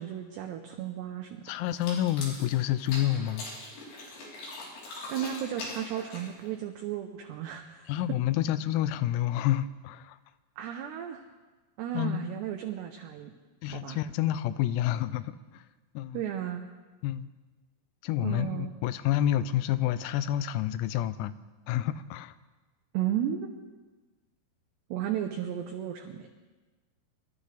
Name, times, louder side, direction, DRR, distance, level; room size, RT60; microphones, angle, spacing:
voice 1, 0.0-1.4 5.1-7.9 10.6-11.2 11.8-13.3 13.6-14.0 16.1-16.7 18.2-18.7 22.9-23.5 24.9-26.4, right 10 dB, 85° right, 4 dB, 2.4 m, -34 dB
voice 2, 1.5-3.4 7.9-10.2 11.9-12.2 13.6-15.6 15.9-16.2 17.0-17.3 18.0-21.3 21.7-22.3, left 12 dB, 85° left, 13 dB, 3.3 m, -29 dB
sound 1, 1.7-6.5, left 2 dB, 65° left, 6.2 m, -42 dB
26.5 x 13.0 x 3.4 m, 1.3 s
omnidirectional pair, 6.0 m